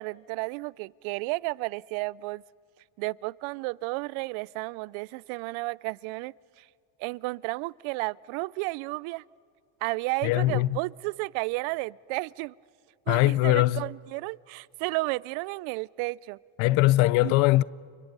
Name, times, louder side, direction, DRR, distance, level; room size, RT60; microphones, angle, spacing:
voice 1, 0.0-2.4 3.0-6.7 7.0-9.2 9.8-12.5 13.1-16.4 17.2-17.4, right 23 dB, 85° right, 0.5 m, -32 dB
voice 2, 10.2-10.8 13.1-13.8 16.6-17.6, left 18 dB, 80° left, 0.6 m, -21 dB
30.0 x 25.0 x 5.4 m
cardioid pair, 110°, 47 cm